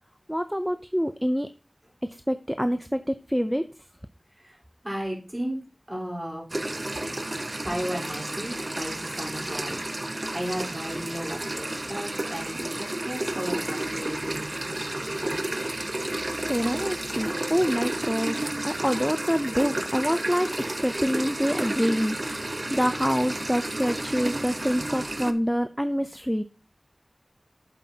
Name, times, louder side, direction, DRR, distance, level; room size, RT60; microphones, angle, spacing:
voice 1, 0.3-1.5 2.3-3.7 16.5-26.4, equal, ahead, 10 dB, 0.4 m, -26 dB
voice 2, 4.8-5.6 5.9-6.4 7.6-9.8 10.3-15.4, equal, 20° right, -3 dB, 3.8 m, -34 dB
sound 1, 6.5-25.3, right 1 dB, 45° right, 0.7 m, -31 dB
8.3 x 7.5 x 2.8 m, 0.34 s
wide cardioid pair, 45°, 0 cm